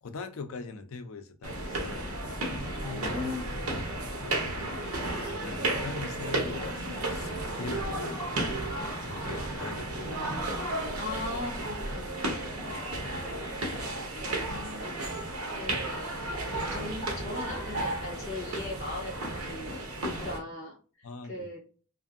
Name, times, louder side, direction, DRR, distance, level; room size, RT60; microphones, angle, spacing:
voice 1, 0.0-2.1 2.7-3.9 4.2-8.3 8.8-10.4 21.0-21.6, left 4 dB, 70° left, 0.5 m, -42 dB
sound 1, 1.4-20.4, right 1 dB, 85° right, 0.8 m, -33 dB
voice 2, 2.8-3.5 11.0-12.5 14.0-16.1 16.7-21.6, left 2 dB, 30° left, 1.3 m, -39 dB
2.6 x 2.6 x 2.5 m
head